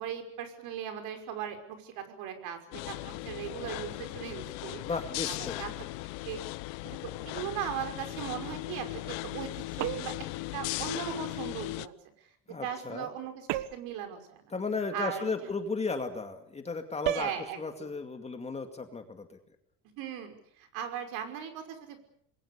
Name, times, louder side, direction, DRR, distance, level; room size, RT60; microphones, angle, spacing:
voice 1, 0.0-4.8 5.2-5.9 6.2-6.4 6.8-10.1 10.5-12.3 12.6-14.5 14.9-15.5 17.1-18.0 20.0-22.0, right 9 dB, 60° right, 6 dB, 5.7 m, -38 dB
sound 1, 2.7-11.9, left 21 dB, 90° left, 0.9 m, -38 dB
voice 2, 4.8-5.6 12.5-13.1 14.5-17.3 17.6-19.4, left 4 dB, 15° left, 6 dB, 2.3 m, -35 dB
sound 2, 9.8-10.3 13.5-14.0 17.0-17.4, right 15 dB, 80° right, 1.5 m, -33 dB
27.5 x 22.0 x 6.9 m, 0.66 s
cardioid pair, 155°, 39 cm